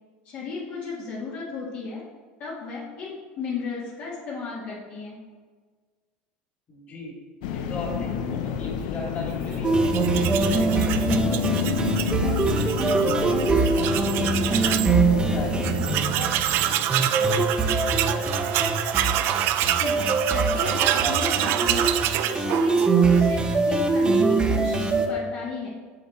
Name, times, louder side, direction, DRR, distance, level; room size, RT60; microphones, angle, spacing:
voice 1, 0.2-2.0 2.4-5.2 19.7-21.9 22.3-25.7, left 4 dB, 55° left, -5 dB, 1.6 m, -34 dB
voice 2, 6.7-7.1 7.5-9.7 10.4-13.0 13.6-15.6 16.0-18.3, left 2 dB, 35° left, -1 dB, 2.1 m, -38 dB
sound 1, 7.4-16.0, left 8 dB, 85° left, 0.6 m, -30 dB
sound 2, 9.6-25.1, right 3 dB, 20° right, 0.8 m, -23 dB
Tools, 9.8-15.0 15.3-15.4 15.6-23.2, right 12 dB, 60° right, 0.4 m, -27 dB
6.8 x 6.2 x 4.2 m, 1.5 s
supercardioid pair, 120°, 4 cm